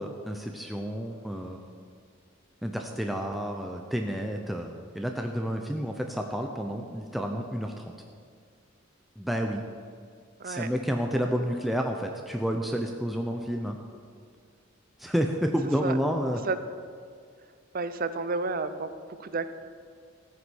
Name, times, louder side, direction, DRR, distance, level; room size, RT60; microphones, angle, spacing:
voice 1, 0.0-1.7 2.6-7.9 9.2-9.6 10.4-13.8 15.0-16.4, equal, ahead, 2 dB, 0.7 m, -30 dB
voice 2, 17.7-18.9 19.2-19.5, right 3 dB, 45° right, 11 dB, 0.7 m, -30 dB
14.5 x 9.6 x 6.4 m, 2.2 s
head